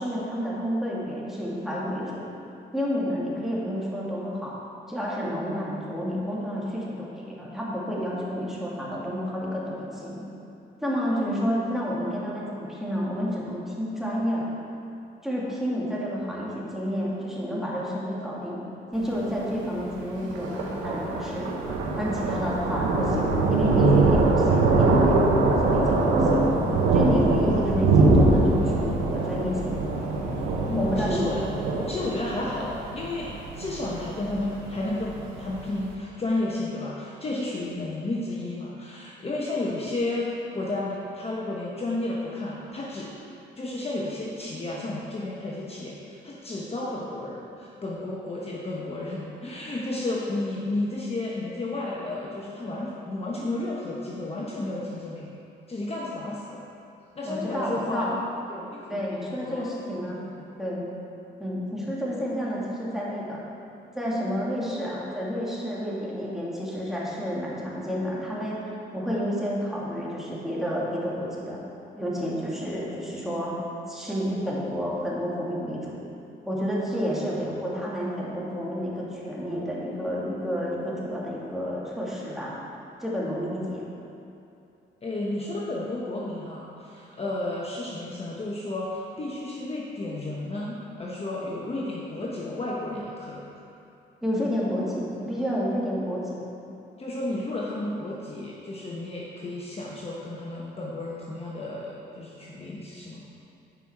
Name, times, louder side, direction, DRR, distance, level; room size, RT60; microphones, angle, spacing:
voice 1, 0.0-2.2 2.7-4.5 4.9-10.2 10.8-14.5 15.2-18.6 18.9-21.5 22.0-26.5 26.9-29.7 30.7-31.2 57.2-58.1 58.9-60.2 60.6-60.9 61.4-63.4 63.9-71.6 72.0-73.5 73.9-76.0 76.4-82.5 83.0-83.8 94.2-96.4, equal, ahead, -6 dB, 2.1 m, -30 dB
voice 2, 11.1-11.6 30.7-31.5 31.8-40.3 40.5-43.1 43.6-55.3 55.7-56.7 57.2-58.2 58.5-59.0 59.3-60.5 85.0-93.4 97.0-103.3, left 2 dB, 30° left, -4 dB, 1.1 m, -32 dB
Thunder, 19.0-35.9, right 3 dB, 90° right, 1.0 m, -23 dB
9.3 x 5.5 x 4.7 m, 2.7 s
cardioid pair, 90°, 20 cm